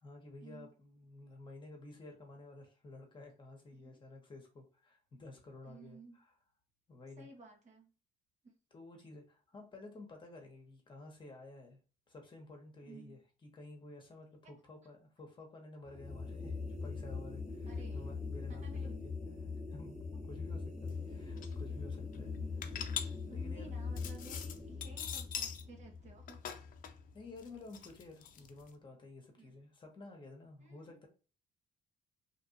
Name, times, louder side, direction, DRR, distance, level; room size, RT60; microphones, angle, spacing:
voice 1, 0.0-6.3 6.9-7.3 8.7-11.8 12.1-18.7 19.0-19.1 19.7-20.0 20.3-22.3 22.7-23.7 27.1-31.1, left 2 dB, 30° left, 2 dB, 1.1 m, -53 dB
voice 2, 5.6-6.2 7.2-7.9 8.4-8.5 12.8-13.2 14.4-14.5 15.8-15.9 17.6-18.1 18.5-19.1 21.2-21.3 22.2-22.5 23.3-26.4 29.4-29.5 30.6-31.0, right 3 dB, 45° right, 2 dB, 1.1 m, -55 dB
sound 1, 15.8-27.2, left 4 dB, 5° right, 1.1 m, -42 dB
sound 2, 20.9-21.0 21.2-21.6 22.0-25.7 26.0-28.7, left 8 dB, 55° left, 0.5 m, -43 dB
2.9 x 2.6 x 2.7 m, 0.35 s
cardioid pair, 110°, 17 cm